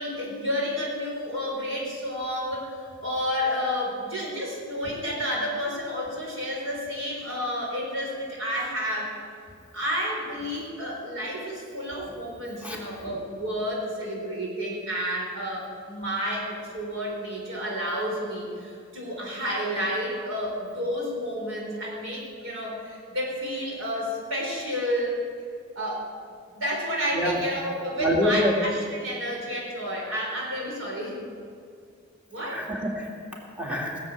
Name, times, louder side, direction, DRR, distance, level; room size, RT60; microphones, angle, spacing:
voice 1, 0.0-9.1 9.7-25.2 25.8-26.1 26.5-31.2 32.3-32.6, equal, 85° right, -2 dB, 4.1 m, -30 dB
voice 2, 12.6-13.1 27.1-27.4 28.0-28.5 32.5-34.0, equal, 5° right, -2 dB, 2.3 m, -27 dB
18.0 x 7.5 x 8.5 m, 2.3 s
head